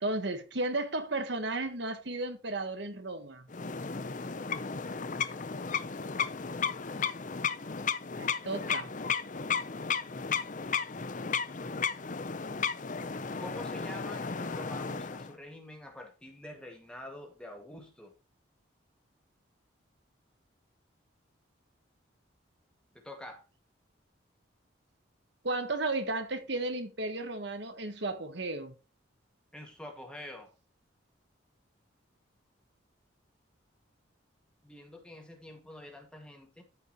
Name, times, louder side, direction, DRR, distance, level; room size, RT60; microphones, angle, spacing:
voice 1, 0.0-3.4 8.2-8.9 25.4-28.7, right 2 dB, 60° right, 1.4 m, -34 dB
sound 1, 3.5-15.3, left 6 dB, 40° left, 0.6 m, -34 dB
voice 2, 13.4-18.1 22.9-23.5 29.5-30.5 34.6-36.6, left 1 dB, 5° left, 2.0 m, -46 dB
13.5 x 5.5 x 2.9 m
head